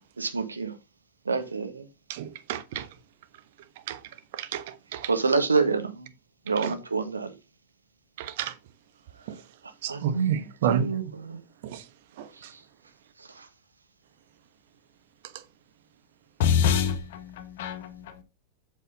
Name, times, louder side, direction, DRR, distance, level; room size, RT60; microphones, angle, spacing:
voice 1, 0.2-0.8 1.3-1.9 5.0-6.1 6.5-7.4 9.2-11.4 12.3-12.6 13.2-13.5, right 4 dB, 75° right, 1.6 m, -28 dB
voice 2, 2.1-2.9 3.9-4.0 4.4-4.6 4.9-5.1 8.2-8.5 9.8-10.9 11.6-11.8 12.2-12.3, right 9 dB, 50° right, 1.2 m, -30 dB
voice 3, 16.4-18.2, left 8 dB, 55° left, 1.5 m, -26 dB
8.1 x 6.6 x 3.8 m
figure-of-eight pair, 90°, 0 cm